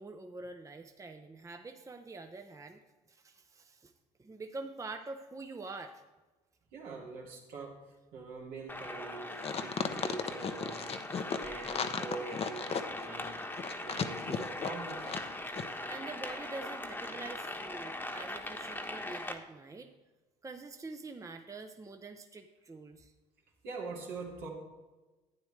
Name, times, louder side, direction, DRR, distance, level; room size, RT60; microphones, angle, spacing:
voice 1, 0.0-2.8 3.1-3.9 4.2-6.0 15.9-19.9 20.4-23.1, right 3 dB, 20° right, 6 dB, 0.8 m, -45 dB
voice 2, 6.7-7.8 8.1-10.9 11.3-13.4 13.8-15.2 23.6-24.5, right 3 dB, 75° right, -2 dB, 2.5 m, -44 dB
sound 1, 8.7-19.3, left 1 dB, 10° left, 1.2 m, -41 dB
sound 2, 9.4-15.3 15.5-15.6, left 6 dB, 40° left, 0.8 m, -35 dB
11.5 x 9.0 x 3.3 m, 1.2 s
hypercardioid pair, 65°, 16 cm